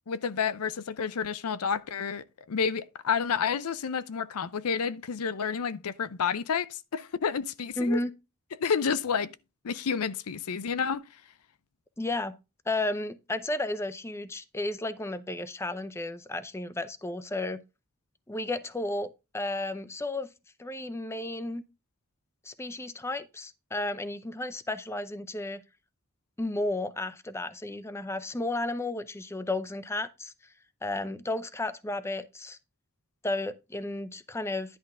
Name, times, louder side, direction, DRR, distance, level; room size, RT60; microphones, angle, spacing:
voice 1, 0.1-8.0 8.6-9.3 9.6-11.0, left 6 dB, 90° left, 0.5 m, -30 dB
voice 2, 7.8-8.1 12.0-12.3 12.7-17.6 18.3-20.3 20.6-21.6 22.4-25.6 26.4-30.3 30.8-32.6 33.2-34.8, left 2 dB, 10° left, 0.5 m, -33 dB
10.5 x 3.6 x 5.4 m
head